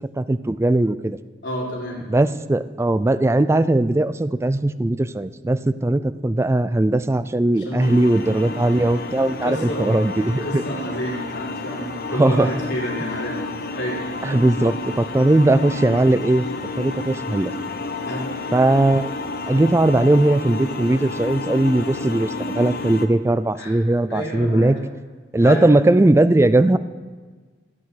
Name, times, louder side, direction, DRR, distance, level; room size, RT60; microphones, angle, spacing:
voice 1, 0.2-1.2 2.1-10.6 12.1-12.5 14.2-16.5 16.8-17.5 18.5-19.1 19.5-24.8 25.3-26.8, right 2 dB, 15° right, 14 dB, 0.3 m, -19 dB
voice 2, 1.4-2.0 7.5-8.1 8.4-8.6 9.2-9.9 10.2-13.4 13.7-14.0 18.1-18.3 23.5-23.7 24.1-24.8 25.4-25.7, equal, 75° left, -4 dB, 3.7 m, -29 dB
sound 1, 7.8-23.1, left 2 dB, 55° left, 0.7 m, -31 dB
15.5 x 8.7 x 4.1 m, 1.4 s
head